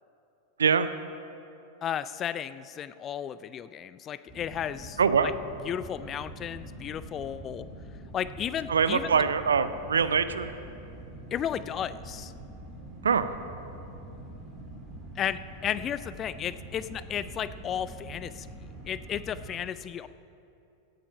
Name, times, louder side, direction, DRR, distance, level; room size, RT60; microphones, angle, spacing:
voice 1, 1.8-5.3 5.6-7.7 8.1-9.2 11.3-12.3 15.2-18.5 18.9-20.1, left 9 dB, 30° left, 15 dB, 0.4 m, -34 dB
sound 1, 4.3-19.6, right 1 dB, ahead, 3.2 m, -44 dB
voice 2, 5.0-5.3 8.7-10.5 13.0-13.4, right 6 dB, 70° right, 12 dB, 0.5 m, -24 dB
16.5 x 8.3 x 5.4 m, 2.7 s
figure-of-eight pair, 90°, 0 cm